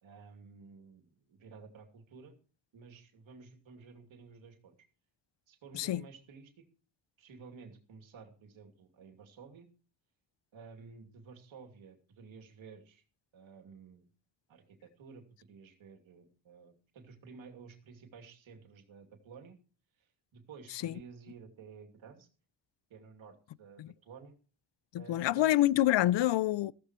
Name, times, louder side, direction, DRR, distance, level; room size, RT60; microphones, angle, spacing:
voice 1, 0.0-2.4 2.7-4.8 5.5-6.6 7.2-9.7 10.5-13.0 13.3-14.1 14.5-19.6 20.0-22.3 22.9-24.3 25.0-25.5, right 5 dB, 85° right, 2.8 m, -53 dB
voice 2, 24.9-26.7, left 14 dB, 65° left, 0.6 m, -27 dB
14.5 x 14.5 x 3.1 m
cardioid pair, 105°, 46 cm